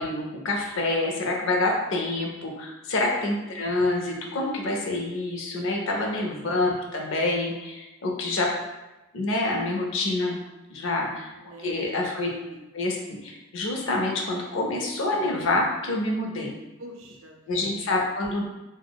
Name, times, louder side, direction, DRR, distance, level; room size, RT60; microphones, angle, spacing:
voice 1, 0.0-8.5 9.1-10.4 10.7-11.3 11.6-12.3 12.7-16.5 17.5-18.4, left 2 dB, 60° left, 0 dB, 0.5 m, -27 dB
voice 2, 10.8-12.2 12.5-12.6 16.8-17.7, right 1 dB, 65° right, 1 dB, 0.5 m, -46 dB
3.6 x 2.1 x 2.2 m, 1.0 s
head